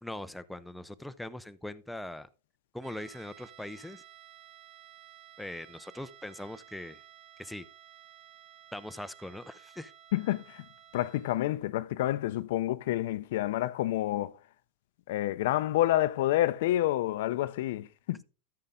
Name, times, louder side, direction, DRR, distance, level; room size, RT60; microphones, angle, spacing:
voice 1, 0.0-2.3 2.7-4.0 5.4-7.0 7.4-7.7 8.7-9.9, left 1 dB, 5° left, 0.4 m, -41 dB
sound 1, 2.8-11.5, right 11 dB, 40° right, 2.7 m, -54 dB
voice 2, 10.1-10.6 10.9-14.4 15.1-18.2, left 14 dB, 65° left, 0.5 m, -28 dB
13.0 x 5.6 x 3.7 m
supercardioid pair, 150°, 0 cm